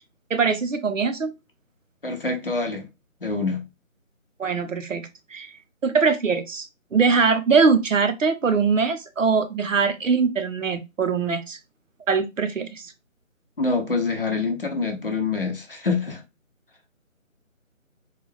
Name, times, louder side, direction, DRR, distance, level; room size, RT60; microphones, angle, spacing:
voice 1, 0.3-1.3 4.4-5.5 5.8-11.6 12.1-12.9, right 5 dB, 65° right, 0.8 m, -22 dB
voice 2, 2.0-2.9 3.2-3.6 13.6-16.2, left 3 dB, 40° left, 0.8 m, -25 dB
4.0 x 2.3 x 3.2 m
figure-of-eight pair, 170°, 41 cm